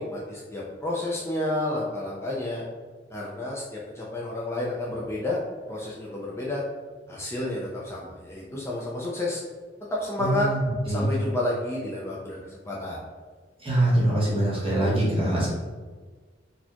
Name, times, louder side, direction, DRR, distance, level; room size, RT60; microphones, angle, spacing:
voice 1, 0.0-2.6 3.1-5.4 5.7-6.6 7.1-9.4 9.9-10.5 10.9-13.0, left 1 dB, 15° left, -4 dB, 0.4 m, -30 dB
voice 2, 10.2-10.6 10.9-11.1 13.6-15.5, right 1 dB, 30° right, -6 dB, 1.1 m, -23 dB
4.1 x 2.4 x 2.8 m, 1.4 s
head